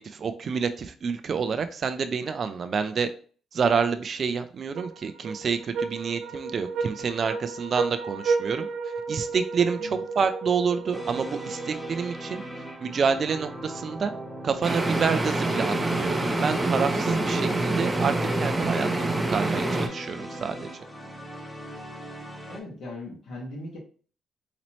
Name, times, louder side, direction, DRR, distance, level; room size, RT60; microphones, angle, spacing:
voice 1, 0.0-3.1 3.5-8.7 9.1-12.4 12.8-14.1 14.4-20.7, right 6 dB, 50° right, 9 dB, 0.4 m, -28 dB
sound 1, 4.7-12.3, right 4 dB, 70° right, 0.7 m, -32 dB
sound 2, 10.9-22.6, equal, 10° left, 1.1 m, -39 dB
sound 3, 14.6-19.9, right 2 dB, 20° right, 0.7 m, -26 dB
voice 2, 22.4-23.8, left 2 dB, 70° left, -3 dB, 1.8 m, -39 dB
4.1 x 2.9 x 3.0 m, 0.42 s
supercardioid pair, 70°, 0 cm